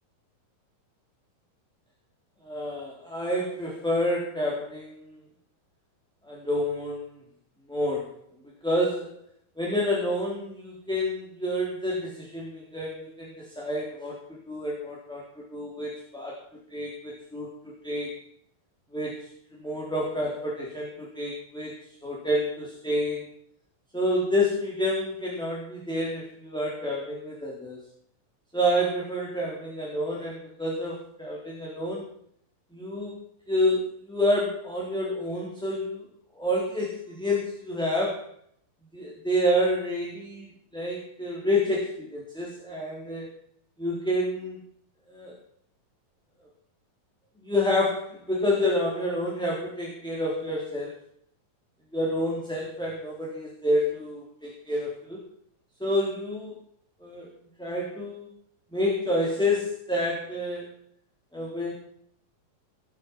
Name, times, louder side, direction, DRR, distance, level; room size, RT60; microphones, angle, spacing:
voice 1, 2.4-5.1 6.3-7.2 7.7-8.1 8.6-9.1 9.6-16.4 16.7-17.5 17.8-18.2 18.9-19.3 19.6-21.7 22.0-23.3 23.9-27.8 28.5-32.0 32.7-33.1 33.5-36.1 36.3-38.2 38.9-40.5 40.7-43.3 43.8-44.6 45.1-45.3 47.4-50.9 51.9-55.2 55.8-56.6 57.0-57.3 57.6-58.3 58.7-60.7 61.3-61.7, left 1 dB, ahead, -4 dB, 3.2 m, -28 dB
19.0 x 9.5 x 6.2 m, 0.66 s
omnidirectional pair, 4.1 m